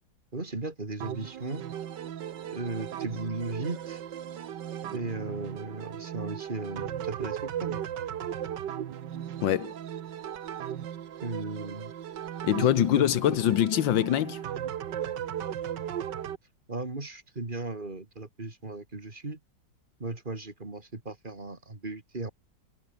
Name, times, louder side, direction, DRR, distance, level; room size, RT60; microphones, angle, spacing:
voice 1, 0.3-1.6 2.5-4.0 4.9-7.8 11.2-11.9 12.5-13.1 16.7-19.4 20.0-22.3, right 2 dB, 25° right, 3.1 m, -36 dB
sound 1, 1.0-16.4, right 10 dB, 70° right, 1.8 m, -37 dB
voice 2, 9.4-9.7 12.4-14.4, left 11 dB, 90° left, 1.7 m, -24 dB
omnidirectional pair, 2.0 m